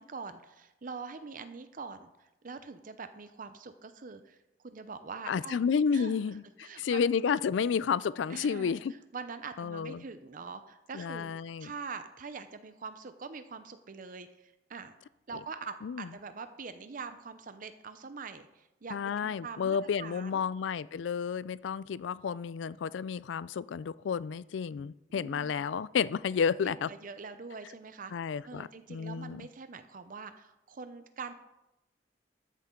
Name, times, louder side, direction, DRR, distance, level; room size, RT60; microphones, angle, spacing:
voice 1, 0.0-5.6 5.9-6.2 6.6-7.0 8.3-8.8 9.1-11.3 11.6-14.9 15.3-20.4 25.2-25.6 26.6-28.1 28.4-31.3, right 5 dB, 50° right, 0.6 m, -44 dB
voice 2, 5.3-8.9 9.6-10.0 10.9-11.7 15.8-16.1 18.9-26.9 28.1-29.4, left 6 dB, 85° left, 0.4 m, -31 dB
14.0 x 10.0 x 3.8 m
head